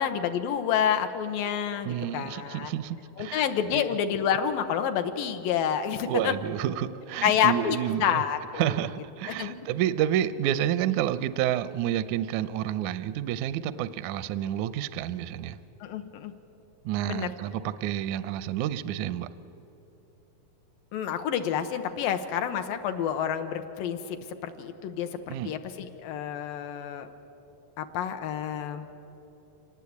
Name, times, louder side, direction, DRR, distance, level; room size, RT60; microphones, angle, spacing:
voice 1, 0.0-2.7 3.2-6.3 7.2-8.8 9.3-9.6 15.8-16.3 17.1-17.3 20.9-27.1 27.8-28.9, left 8 dB, 80° left, 8 dB, 2.7 m, -28 dB
voice 2, 1.8-3.4 3.7-3.8 6.1-8.2 8.6-15.6 16.9-19.3 25.3-25.5, right 11 dB, 80° right, 14 dB, 1.8 m, -29 dB
26.0 x 19.0 x 8.5 m, 3.0 s
omnidirectional pair, 4.0 m